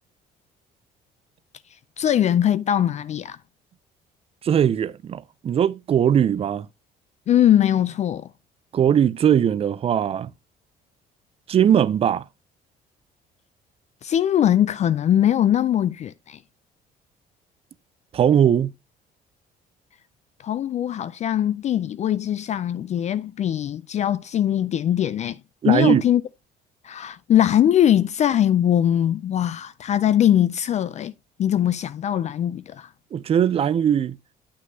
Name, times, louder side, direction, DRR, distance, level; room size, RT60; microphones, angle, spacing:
voice 1, 2.0-3.4 7.3-8.3 14.0-16.4 20.4-25.4 25.6-26.2 26.8-31.1 31.4-32.9, left 10 dB, 45° left, 0.4 m, -21 dB
voice 2, 4.4-6.7 8.7-10.3 11.5-12.2 18.1-18.7 25.6-26.0 33.1-34.2, right 9 dB, 35° right, 0.4 m, -20 dB
7.6 x 6.2 x 2.7 m
cardioid pair, 110°, 17 cm